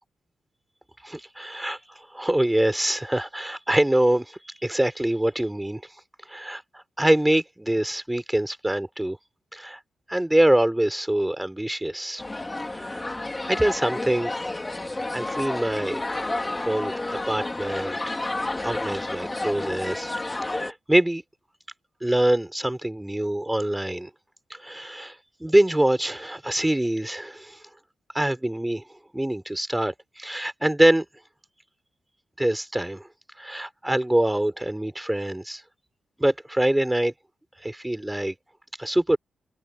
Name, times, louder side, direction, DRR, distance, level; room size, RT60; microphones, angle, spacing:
voice 1, 1.0-1.8 2.1-5.8 6.3-9.2 9.5-9.8 10.1-12.2 12.7-14.3 15.1-16.0 16.6-18.0 18.6-21.2 22.0-24.1 24.5-25.1 25.4-27.6 28.1-28.8 29.1-31.0 32.4-33.0 33.4-35.6 36.2-37.1 37.6-38.3 38.8-39.2, right 1 dB, 10° right, 4.0 m, -24 dB
sound 1, 12.2-20.7, left 2 dB, 20° left, 3.3 m, -30 dB
cardioid pair, 80°, 0 cm